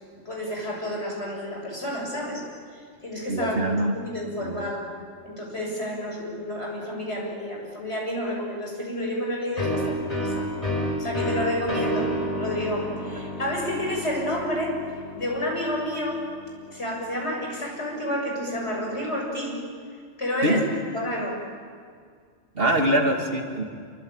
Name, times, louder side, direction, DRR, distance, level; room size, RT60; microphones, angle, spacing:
voice 1, 0.1-2.4 2.7-4.9 5.2-10.5 11.0-14.8 15.1-16.2 16.7-19.6 20.2-20.6 20.9-21.5, left 1 dB, 65° left, -1 dB, 7.5 m, -30 dB
voice 2, 3.3-4.0 4.4-4.6 20.4-20.6 22.5-23.6, right 1 dB, 50° right, 2 dB, 2.6 m, -23 dB
sound 1, 9.6-17.0, equal, 30° left, 5.1 m, -31 dB
27.0 x 24.0 x 9.0 m, 2.1 s
omnidirectional pair, 1.2 m